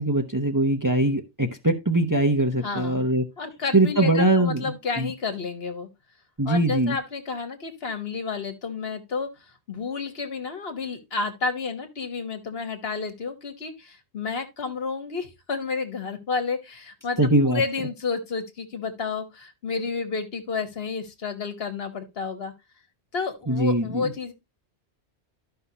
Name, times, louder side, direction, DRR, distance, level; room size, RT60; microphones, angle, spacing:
voice 1, 0.0-3.2 3.7-4.6 5.0-5.1 6.4-7.0 17.2-17.6 23.5-24.1, right 1 dB, 20° right, 0.8 m, -22 dB
voice 2, 2.6-3.0 3.4-5.9 6.5-9.3 9.7-22.5 23.1-24.3, left 4 dB, 65° left, 1.5 m, -31 dB
12.5 x 5.7 x 2.8 m
omnidirectional pair, 1.1 m